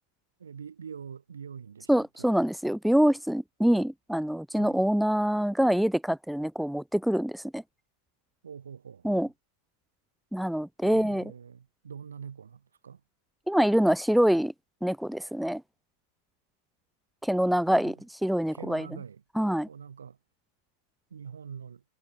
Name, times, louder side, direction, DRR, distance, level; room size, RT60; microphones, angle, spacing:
voice 1, 0.4-2.3 4.5-4.8 8.4-9.3 10.8-13.0 17.7-17.9 18.5-19.2 19.7-20.2 21.1-21.8, right 7 dB, 70° right, 3.0 m, -44 dB
voice 2, 1.9-7.6 9.0-9.3 10.3-11.2 13.5-14.5 14.8-15.6 17.2-17.9 18.2-18.9 19.4-19.7, equal, ahead, 0.4 m, -25 dB
figure-of-eight pair, 90°, 0 cm